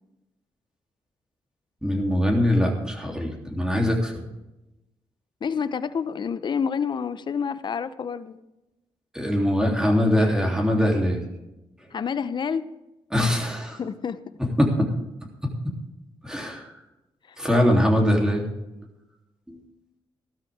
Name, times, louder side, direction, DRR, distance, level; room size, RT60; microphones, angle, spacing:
voice 1, 1.8-4.1 9.1-11.2 13.1-13.8 14.6-14.9 16.2-16.7 17.4-18.4 19.5-19.6, equal, 5° right, 0 dB, 3.3 m, -22 dB
voice 2, 5.4-8.4 11.9-12.7 13.8-14.2, left 6 dB, 50° left, 13 dB, 0.8 m, -28 dB
15.0 x 12.5 x 3.6 m, 0.95 s
cardioid pair, 80°, 10 cm